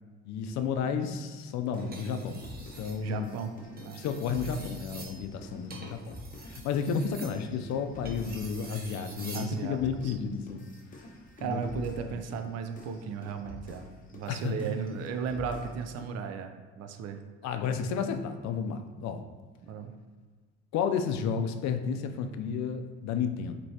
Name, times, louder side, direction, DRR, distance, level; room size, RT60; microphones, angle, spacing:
voice 1, 0.2-2.4 2.8-3.3 3.9-6.2 6.5-10.7 11.4-11.6 12.0-12.2 14.3-14.5 17.4-19.2 20.7-23.6, left 6 dB, 65° left, 7 dB, 0.5 m, -32 dB
sound 1, 1.7-8.8 9.1-16.2, left 3 dB, 25° left, 0.8 m, -47 dB
sound 2, 1.8-3.0 3.6-9.6 11.0-11.3, right 3 dB, 30° right, 0.9 m, -47 dB
voice 2, 3.0-3.5 3.8-4.0 9.3-10.2 11.4-17.2 19.6-19.9, right 6 dB, 55° right, 6 dB, 0.5 m, -36 dB
4.5 x 3.0 x 2.8 m, 1.4 s
supercardioid pair, 75°, 30 cm